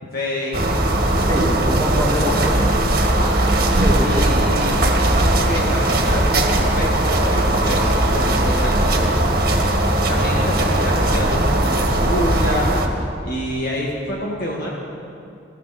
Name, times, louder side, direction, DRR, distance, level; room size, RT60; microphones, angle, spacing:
voice 1, 0.1-0.6 3.0-3.3 4.0-6.9 7.2-9.1 10.1-12.7 13.2-14.7, left 1 dB, 55° left, -4 dB, 1.9 m, -27 dB
sound 1, 0.5-12.9, right 1 dB, 55° right, 1.7 m, -18 dB
voice 2, 1.3-2.6 3.8-4.3 10.1-10.4, equal, 15° left, -7 dB, 4.5 m, -24 dB
22.0 x 15.0 x 4.3 m, 2.5 s
head